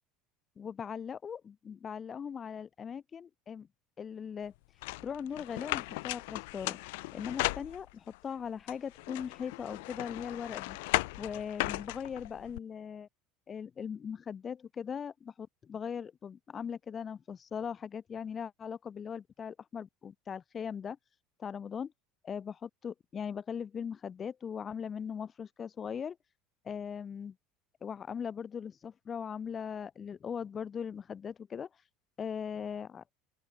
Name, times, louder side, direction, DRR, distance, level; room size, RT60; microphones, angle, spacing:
voice 1, 0.6-3.7 4.0-4.5 5.0-6.8 7.1-10.8 11.2-13.1 13.5-21.0 21.4-21.9 22.2-26.2 26.6-27.3 27.8-31.7 32.2-33.0, left 7 dB, 35° left, 4.5 m, -39 dB
sound 1, 4.8-8.2 8.7-12.6, left 24 dB, 75° left, 2.8 m, -36 dB
open air
hypercardioid pair, 80°, 0 cm